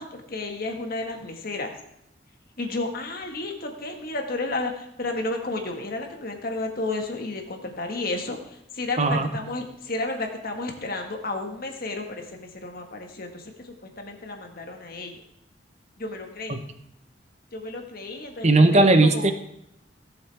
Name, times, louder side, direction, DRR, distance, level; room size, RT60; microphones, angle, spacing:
voice 1, 0.0-1.7 2.6-15.1 16.0-16.6 17.5-19.3, left 2 dB, 55° left, 3 dB, 1.7 m, -32 dB
voice 2, 9.0-9.3 16.5-16.6 18.4-19.3, right 2 dB, 40° right, 7 dB, 1.0 m, -17 dB
17.0 x 7.5 x 3.5 m, 0.79 s
head